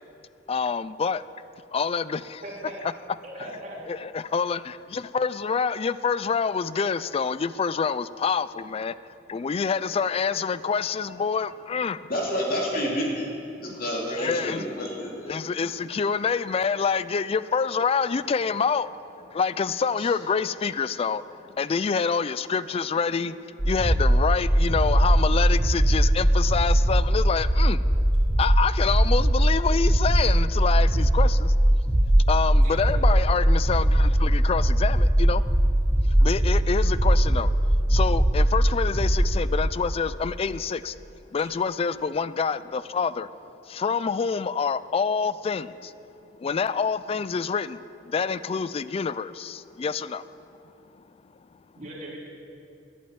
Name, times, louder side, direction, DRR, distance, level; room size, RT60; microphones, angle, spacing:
voice 1, 0.5-1.2 1.7-2.4 3.9-9.0 9.3-12.1 13.7-13.8 14.1-14.7 15.3-21.2 21.5-27.8 28.4-31.5 32.3-35.4 36.2-37.5 37.9-41.0 41.3-43.3 43.7-45.9 46.4-50.2, left 5 dB, 30° left, 16 dB, 0.3 m, -27 dB
voice 2, 2.4-2.8 3.2-3.8 32.6-32.9 51.7-52.2, right 1 dB, 45° right, -5 dB, 3.5 m, -39 dB
voice 3, 12.1-13.3 13.6-15.2, equal, 55° left, -2 dB, 2.7 m, -28 dB
sound 1, 23.6-39.4, right 1 dB, 20° right, 0.7 m, -20 dB
11.0 x 8.6 x 8.8 m, 2.7 s
head